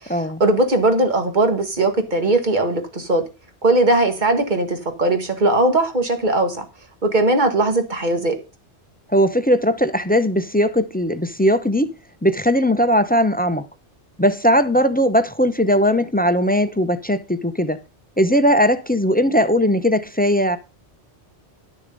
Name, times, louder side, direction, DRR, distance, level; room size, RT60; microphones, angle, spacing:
voice 1, 0.0-3.2 3.6-6.6 7.0-8.4, right 2 dB, 45° right, 1.8 m, -19 dB
voice 2, 9.1-11.9 12.2-13.7 14.2-17.8 18.2-20.6, equal, 10° left, 0.6 m, -18 dB
11.5 x 6.7 x 5.3 m
omnidirectional pair, 1.2 m